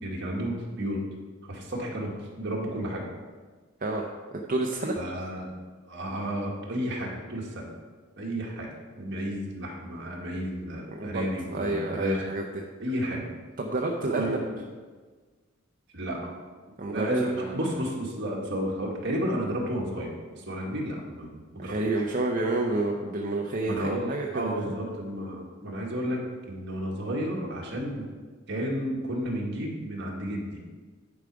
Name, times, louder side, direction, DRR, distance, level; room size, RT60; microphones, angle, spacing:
voice 1, 0.0-1.0 1.5-3.1 4.9-5.5 5.9-7.7 8.2-8.7 8.9-12.3 12.8-13.3 14.1-14.6 15.9-16.3 16.9-21.7 23.7-28.1 28.5-30.6, equal, 60° right, -2 dB, 1.8 m, -32 dB
voice 2, 4.3-5.0 11.0-12.6 13.6-14.4 16.8-17.6 21.6-24.7, right 2 dB, 45° right, 0 dB, 0.7 m, -29 dB
10.5 x 5.1 x 4.7 m, 1.4 s
head